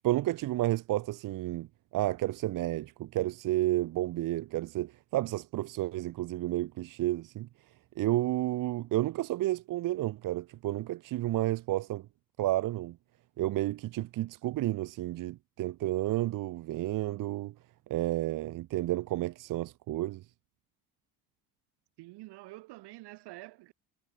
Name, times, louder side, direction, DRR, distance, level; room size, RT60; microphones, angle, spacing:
voice 1, 0.0-1.7 1.9-7.5 8.0-12.1 12.4-13.0 13.4-17.5 17.9-20.2, right 16 dB, 50° right, 0.7 m, -31 dB
voice 2, 22.0-23.7, right 20 dB, 75° right, 3.5 m, -47 dB
supercardioid pair, 75°, 41 cm